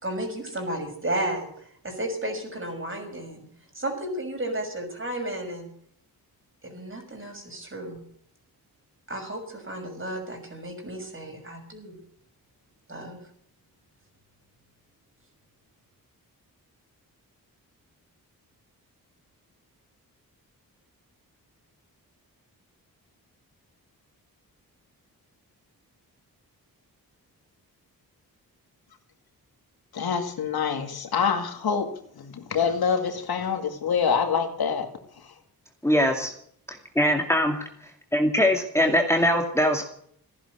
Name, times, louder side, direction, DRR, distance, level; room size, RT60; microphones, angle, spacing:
voice 1, 0.0-3.4 3.7-5.7 6.6-8.0 9.1-12.0 12.9-13.2, right 1 dB, 35° right, 4 dB, 6.2 m, -33 dB
voice 2, 29.9-34.9, left 6 dB, 75° left, 6 dB, 2.3 m, -26 dB
voice 3, 35.8-36.3 36.7-37.6 38.1-39.8, equal, 5° left, 2 dB, 2.3 m, -22 dB
15.5 x 11.0 x 8.0 m, 0.65 s
cardioid pair, 60°, 37 cm